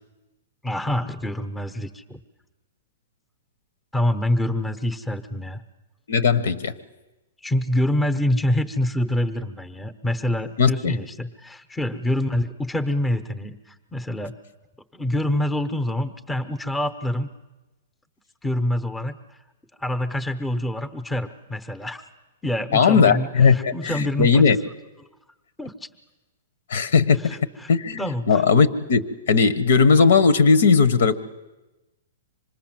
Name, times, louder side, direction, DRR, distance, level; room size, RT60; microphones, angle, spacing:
voice 1, 0.6-2.2 3.9-5.6 7.4-14.3 14.9-17.3 18.4-19.2 19.8-22.0 22.4-24.5 25.6-25.9 27.2-27.7 28.0-28.4, left 1 dB, 5° left, 10 dB, 0.8 m, -26 dB
voice 2, 6.1-6.7 10.6-11.0 22.7-24.6 26.7-27.4 27.7-28.0 28.3-31.1, left 5 dB, 75° left, 16 dB, 1.2 m, -18 dB
26.0 x 20.0 x 7.6 m, 1.1 s
hypercardioid pair, 160°, 0 cm